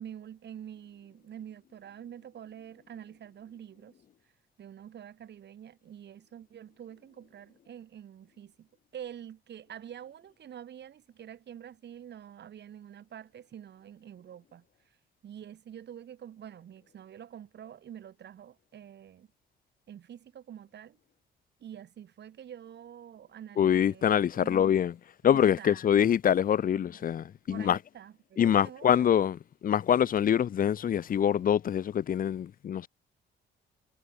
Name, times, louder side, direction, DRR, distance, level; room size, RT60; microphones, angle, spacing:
voice 1, 0.0-3.9 4.6-14.6 15.2-19.3 19.9-21.0 21.6-24.9 25.2-25.8 27.5-29.1, right 9 dB, 60° right, 1.9 m, -47 dB
voice 2, 23.6-24.9 25.2-27.8 28.4-29.4 29.6-32.9, left 9 dB, 45° left, 0.6 m, -25 dB
cardioid pair, 90°, 20 cm